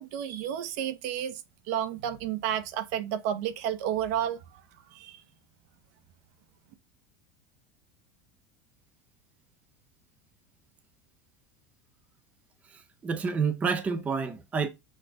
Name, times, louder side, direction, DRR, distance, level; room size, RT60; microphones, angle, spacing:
voice 1, 0.0-1.4 1.7-4.4 4.9-5.2, right 10 dB, 55° right, 0.8 m, -31 dB
voice 2, 12.7-14.7, right 5 dB, 15° right, 0.5 m, -29 dB
6.5 x 3.8 x 4.7 m
supercardioid pair, 170°, 10 cm